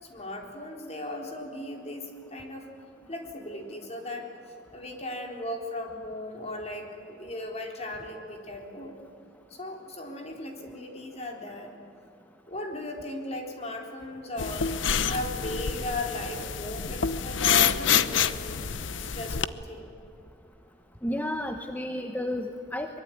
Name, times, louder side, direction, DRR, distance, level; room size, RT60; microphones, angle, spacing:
voice 1, 0.0-2.7 3.1-4.3 4.7-8.9 9.5-11.7 12.5-14.7 15.1-18.7 19.0-19.9, left 1 dB, 35° left, 2 dB, 3.8 m, -37 dB
sound 1, 14.4-19.4, left 8 dB, 85° left, 0.8 m, -27 dB
voice 2, 21.0-23.0, left 1 dB, 10° left, 5 dB, 1.0 m, -32 dB
23.5 x 22.5 x 9.4 m, 2.7 s
head